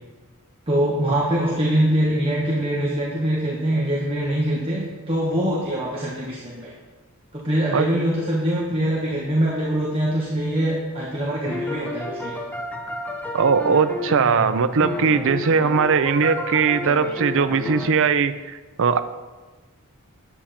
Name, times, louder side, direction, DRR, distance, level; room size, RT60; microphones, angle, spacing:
voice 1, 0.7-6.7 7.3-12.4, right 1 dB, 25° right, -5 dB, 1.6 m, -23 dB
sound 1, 11.4-17.9, left 1 dB, 5° left, 0.9 m, -31 dB
voice 2, 13.3-19.0, right 5 dB, 60° right, 12 dB, 0.6 m, -20 dB
10.5 x 8.7 x 4.3 m, 1.3 s
head